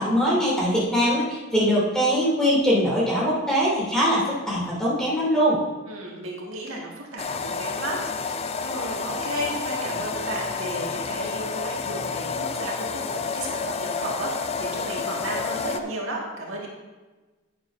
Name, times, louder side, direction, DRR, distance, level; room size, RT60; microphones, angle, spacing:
voice 1, 0.0-5.6, equal, 5° left, -8 dB, 2.9 m, -22 dB
voice 2, 5.8-16.7, right 1 dB, 70° right, -3 dB, 1.9 m, -33 dB
sound 1, 7.2-15.8, left 5 dB, 30° left, 0.3 m, -30 dB
10.5 x 9.6 x 2.7 m, 1.2 s
head